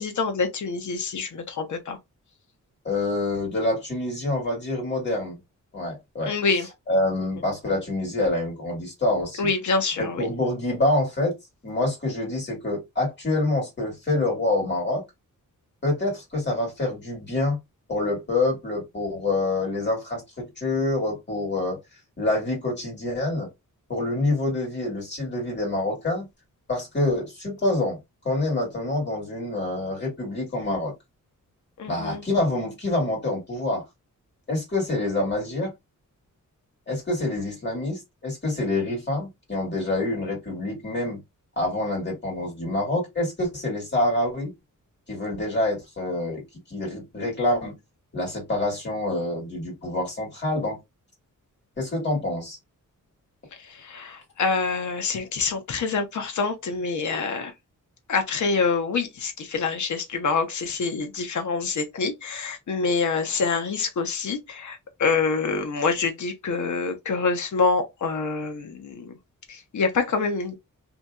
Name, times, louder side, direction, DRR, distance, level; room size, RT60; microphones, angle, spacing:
voice 1, 0.0-2.0 6.3-6.7 9.4-10.3 31.8-32.2 53.6-57.5 58.1-69.2 69.5-70.6, left 4 dB, 65° left, 0.8 m, -26 dB
voice 2, 2.8-5.4 5.7-6.3 6.9-9.5 10.0-11.3 11.6-15.0 15.8-17.6 17.9-21.8 22.2-23.5 23.9-26.3 26.7-28.0 28.2-30.9 31.9-33.8 34.5-35.7 36.9-41.2 41.6-44.5 45.1-46.4 46.7-47.8 48.1-50.8 51.8-52.6, left 2 dB, 35° left, 2.0 m, -26 dB
2.8 x 2.7 x 2.3 m
wide cardioid pair, 160°, 33 cm